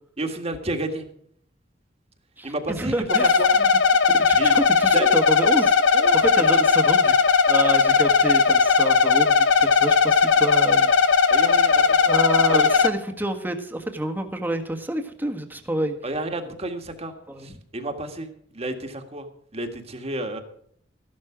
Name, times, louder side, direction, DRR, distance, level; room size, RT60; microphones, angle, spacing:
voice 1, 0.2-1.1 2.4-3.5 4.4-4.6 4.9-5.1 5.9-6.6 11.3-12.1 12.5-12.7 16.0-17.1 17.4-19.3 19.5-20.4, right 2 dB, 35° right, 6 dB, 1.7 m, -31 dB
voice 2, 2.4-3.7 4.2-5.7 6.1-7.1 7.5-10.9 12.1-16.0 17.3-17.5, right 1 dB, 10° right, 5 dB, 1.5 m, -28 dB
sound 1, 3.1-12.9, left 5 dB, 75° left, 1.1 m, -18 dB
14.0 x 11.5 x 5.0 m, 0.62 s
head